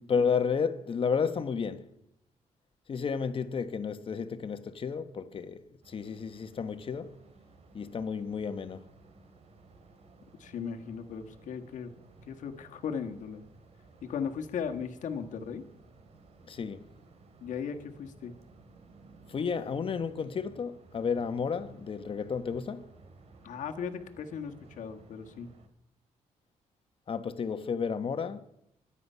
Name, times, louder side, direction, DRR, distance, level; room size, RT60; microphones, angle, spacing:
voice 1, 0.1-1.9 2.9-7.2 7.7-8.8 16.5-16.9 19.3-22.9 27.1-28.4, left 6 dB, 45° left, 1.3 m, -32 dB
sound 1, 5.8-25.7, right 3 dB, 55° right, 2.5 m, -57 dB
voice 2, 10.4-11.9 12.3-13.5 14.0-15.6 17.4-18.3 23.4-25.5, left 7 dB, 80° left, 1.6 m, -37 dB
24.5 x 10.0 x 5.6 m
cardioid pair, 120°, 13 cm